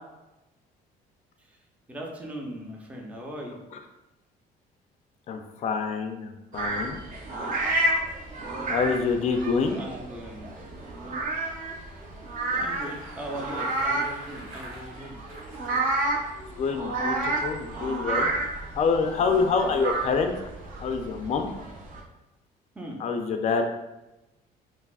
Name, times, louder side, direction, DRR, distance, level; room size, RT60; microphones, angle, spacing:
voice 1, 1.9-3.6 9.8-10.7 11.0-11.2 12.5-15.2 22.7-23.0, equal, 10° right, -1 dB, 0.6 m, -39 dB
voice 2, 5.3-7.0 8.7-9.8 16.6-18.3 18.8-20.3 20.8-21.5 23.0-23.7, left 5 dB, 40° left, 5 dB, 0.4 m, -26 dB
sound 1, 6.5-22.0, right 2 dB, 55° right, 0.9 m, -30 dB
Bicycle, 12.4-15.7, right 1 dB, 75° right, 1.3 m, -45 dB
5.6 x 2.0 x 2.4 m, 0.99 s
cardioid pair, 110°, 17 cm